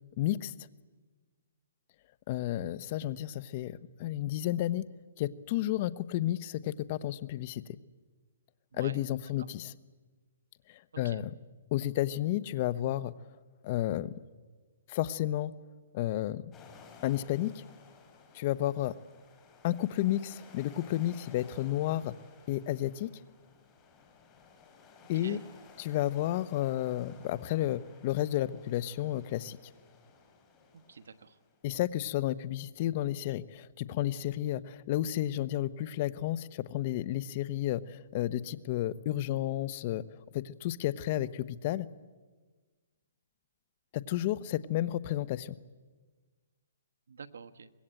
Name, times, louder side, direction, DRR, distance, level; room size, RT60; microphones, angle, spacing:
voice 1, 0.2-0.5 2.3-4.9 5.2-7.6 8.8-9.7 10.7-11.3 11.7-13.1 13.6-14.1 14.9-15.5 15.9-16.4 17.0-17.6 18.3-18.9 19.6-22.1 22.5-23.1 25.1-25.4 25.8-29.6 31.6-40.0 40.3-41.9 43.9-45.6, left 13 dB, 35° left, 16 dB, 0.9 m, -32 dB
voice 2, 8.7-9.0 9.4-9.5 10.9-11.2 25.1-25.4 30.7-31.4 47.1-47.7, right 6 dB, 75° right, 11 dB, 1.3 m, -47 dB
sound 1, 16.5-31.6, left 5 dB, 15° left, 3.4 m, -56 dB
24.5 x 21.0 x 9.0 m, 1.4 s
hypercardioid pair, 160°, 0 cm